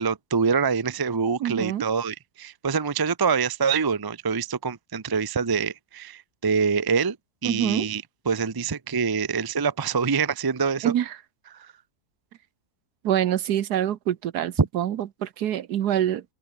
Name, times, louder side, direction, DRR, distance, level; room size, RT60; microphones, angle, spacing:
voice 1, 0.0-7.2 7.4-10.9 11.5-11.7 14.6-14.7, right 5 dB, 25° right, 0.4 m, -25 dB
voice 2, 1.4-1.9 7.4-7.9 10.8-11.2 13.0-16.2, right 11 dB, 75° right, 1.4 m, -25 dB
open air
omnidirectional pair, 1.7 m